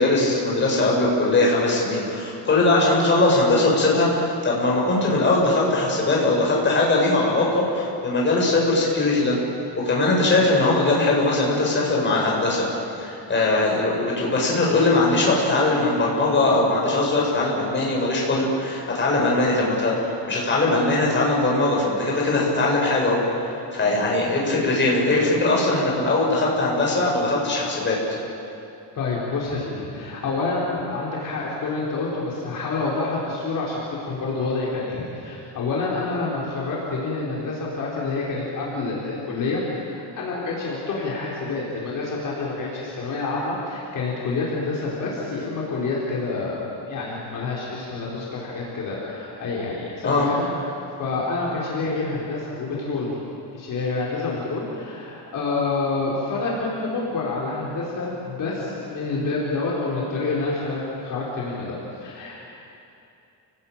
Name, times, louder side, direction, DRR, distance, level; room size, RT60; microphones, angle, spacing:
voice 1, 0.0-9.4 9.8-12.7 13.0-23.2 23.7-28.0 50.0-50.3, left 2 dB, 25° left, -3 dB, 6.8 m, -20 dB
voice 2, 28.9-46.6 46.9-50.5 51.0-53.2 53.5-62.3, left 3 dB, 50° left, -5 dB, 4.8 m, -28 dB
30.0 x 19.5 x 9.0 m, 2.8 s
cardioid pair, 165°, 41 cm